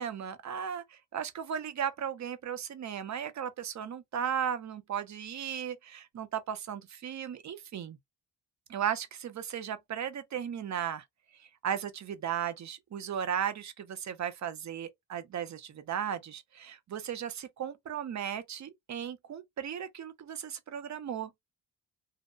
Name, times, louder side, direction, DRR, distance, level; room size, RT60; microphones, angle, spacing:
voice 1, 0.0-8.0 8.7-11.0 11.3-21.3, right 8 dB, 40° right, 0.5 m, -36 dB
2.7 x 2.1 x 2.3 m
cardioid pair, 115°, 45 cm